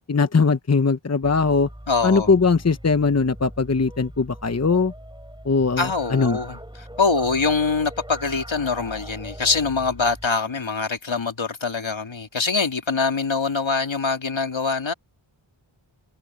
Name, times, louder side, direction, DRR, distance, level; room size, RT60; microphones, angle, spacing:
voice 1, 0.1-1.7 2.0-4.9 5.4-6.4, left 4 dB, 30° left, 0.9 m, -20 dB
sound 1, 1.2-10.3, right 1 dB, 10° right, 7.5 m, -41 dB
voice 2, 1.9-2.3 5.8-14.9, left 4 dB, 65° left, 2.7 m, -24 dB
wide cardioid pair, 65°, 49 cm